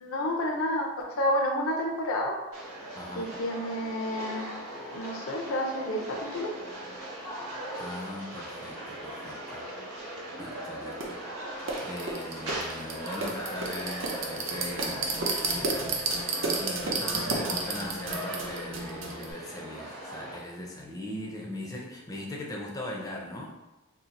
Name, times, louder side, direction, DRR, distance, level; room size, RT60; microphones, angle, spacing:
voice 1, 0.0-2.4 3.2-4.5 4.9-6.5, left 1 dB, 80° left, 1 dB, 0.5 m, -30 dB
sound 1, 2.5-20.4, right 1 dB, 90° right, 1.0 m, -39 dB
voice 2, 3.0-3.3 7.7-9.7 10.4-11.2 11.6-16.1 16.6-23.6, left 1 dB, 15° left, -1 dB, 0.4 m, -40 dB
sound 2, 11.0-11.1 11.7-19.3, right 3 dB, 65° right, 0.6 m, -31 dB
2.7 x 2.4 x 3.9 m, 1.1 s
head